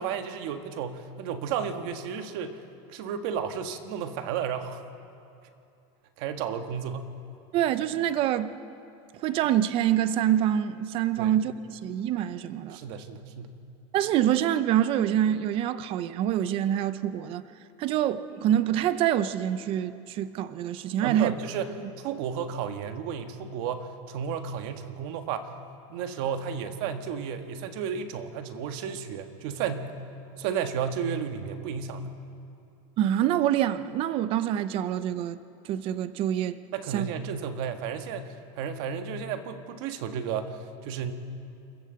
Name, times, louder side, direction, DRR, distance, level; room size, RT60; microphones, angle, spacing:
voice 1, 0.0-2.6 2.9-4.8 6.2-7.1 11.2-11.3 12.7-13.5 21.0-25.5 25.9-29.9 30.4-32.1 36.7-41.1, right 7 dB, 60° right, 1.6 m, -33 dB
voice 2, 7.5-8.5 9.2-12.8 13.9-17.4 17.8-21.3 33.0-35.4 35.7-36.6 36.9-37.1, right 11 dB, 40° right, 0.7 m, -26 dB
28.5 x 13.0 x 7.8 m
supercardioid pair, 160°, 15 cm